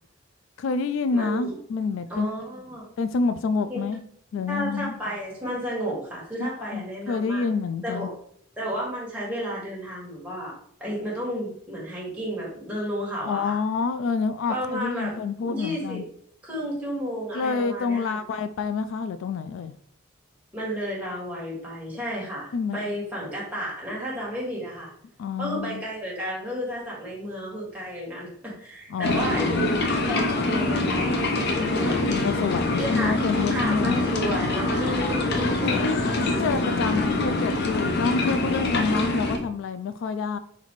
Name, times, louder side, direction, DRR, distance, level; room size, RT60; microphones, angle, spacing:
voice 1, 0.6-2.3 3.0-4.0 4.3-5.0 6.4-8.1 13.2-16.1 17.3-19.7 22.5-22.8 25.2-25.8 28.9-29.7 32.1-34.1 35.7-40.4, left 4 dB, 75° left, 12 dB, 0.3 m, -28 dB
voice 2, 1.1-1.5 2.1-2.8 3.7-3.8 4.5-7.4 7.8-8.1 8.6-10.5 10.8-13.6 14.5-15.1 15.4-16.0 16.4-18.2 20.5-24.9 25.4-32.2 32.8-33.1 33.5-36.4 36.9-37.1, equal, 5° right, -6 dB, 1.8 m, -32 dB
sound 1, 29.0-39.4, left 2 dB, 55° left, 0.7 m, -25 dB
4.1 x 4.0 x 3.0 m, 0.65 s
head